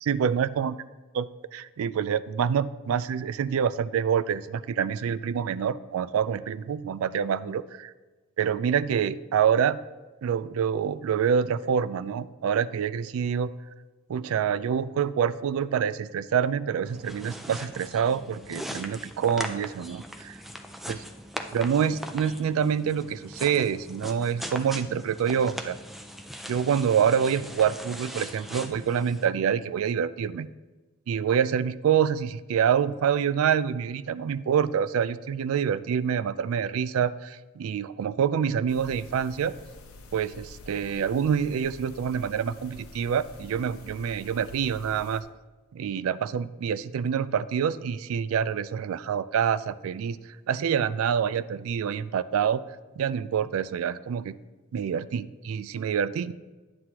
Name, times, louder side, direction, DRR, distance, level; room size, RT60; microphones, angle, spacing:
voice 1, 0.0-0.7 1.2-1.3 1.5-7.9 8.4-9.8 10.2-13.5 14.1-20.3 20.9-21.0 21.5-25.8 26.5-30.5 31.1-39.5 40.1-45.2 45.7-50.2 50.5-52.6 53.0-54.4 54.7-56.3, right 7 dB, 75° right, 15 dB, 0.3 m, -26 dB
sound 1, 16.8-29.3, equal, ahead, 0.4 m, -40 dB
sound 2, 38.7-45.2, left 2 dB, 85° left, 0.8 m, -48 dB
9.6 x 7.5 x 2.9 m, 1.2 s
head